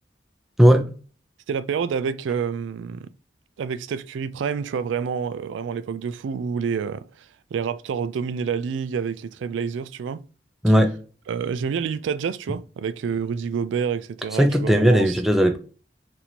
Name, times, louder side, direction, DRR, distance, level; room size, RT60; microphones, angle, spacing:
voice 1, 0.6-0.9 10.6-11.0 14.4-15.6, equal, ahead, 0.4 m, -17 dB
voice 2, 1.5-3.1 3.6-7.3 7.5-10.2 11.3-15.1, right 6 dB, 85° right, 0.3 m, -28 dB
4.2 x 2.6 x 2.8 m
head